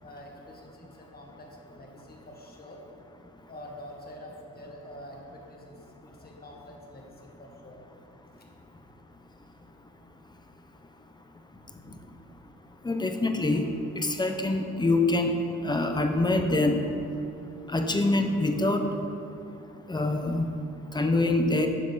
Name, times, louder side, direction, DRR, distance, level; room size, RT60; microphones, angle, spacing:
voice 1, 0.0-2.8 3.5-7.8 11.5-12.0, equal, 30° left, -1 dB, 1.9 m, -47 dB
voice 2, 12.8-13.7 13.9-15.4 15.6-16.8 17.7-19.0 19.9-20.5 20.9-21.7, left 2 dB, 15° left, 5 dB, 0.9 m, -25 dB
12.5 x 6.7 x 4.2 m, 2.7 s
cardioid pair, 90°, 30 cm